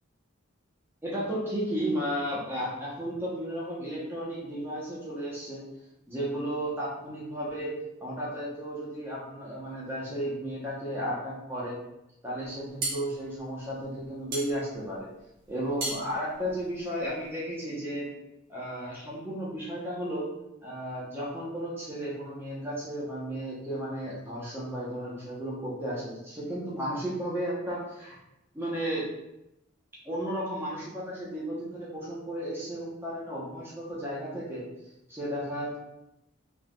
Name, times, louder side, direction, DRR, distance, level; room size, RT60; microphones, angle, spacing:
voice 1, 1.0-5.6 6.1-7.7 8.0-11.8 12.2-15.1 15.5-18.1 18.5-20.3 20.6-28.2 28.5-29.0 30.0-34.6 35.1-35.8, equal, 10° right, -6 dB, 1.0 m, -34 dB
sound 1, 12.4-17.4, right 2 dB, 45° right, 1.1 m, -37 dB
4.0 x 3.6 x 2.4 m, 0.88 s
head